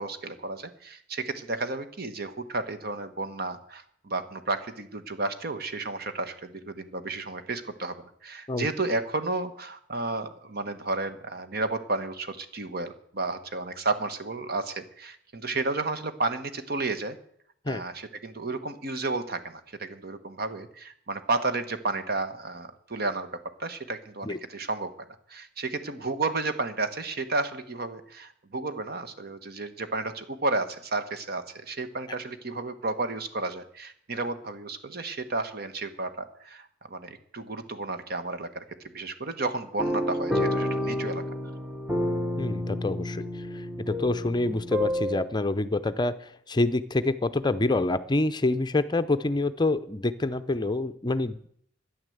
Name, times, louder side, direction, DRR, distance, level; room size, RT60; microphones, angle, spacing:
voice 1, 0.0-17.2 17.7-23.3 23.6-24.9 25.3-38.6 38.9-41.2, right 3 dB, 55° right, 10 dB, 1.3 m, -32 dB
sound 1, 39.8-45.3, left 1 dB, 5° right, 1.2 m, -29 dB
voice 2, 42.4-51.4, left 2 dB, 25° left, 12 dB, 0.6 m, -27 dB
12.5 x 9.8 x 7.9 m, 0.66 s
head